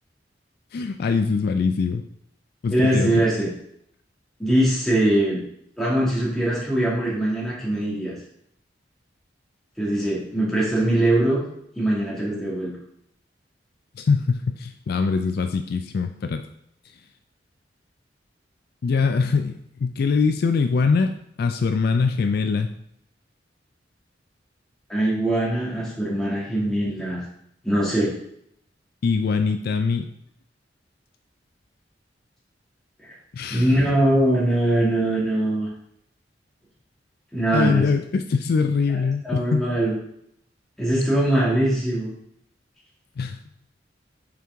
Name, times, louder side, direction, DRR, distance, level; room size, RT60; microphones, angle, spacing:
voice 1, 0.7-2.0 2.6-3.3 14.0-16.4 18.8-21.1 21.4-22.7 29.0-30.1 33.3-33.7 37.5-39.6 43.2-43.4, left 4 dB, 55° left, 7 dB, 0.3 m, -23 dB
voice 2, 2.7-3.5 4.4-5.4 5.8-8.1 9.8-11.4 11.8-12.7 24.9-27.2 27.6-28.1 33.0-33.1 33.5-35.7 37.3-37.9 39.2-40.0 40.8-42.1, right 1 dB, 5° left, -7 dB, 2.1 m, -22 dB
5.8 x 4.6 x 3.6 m, 0.73 s
head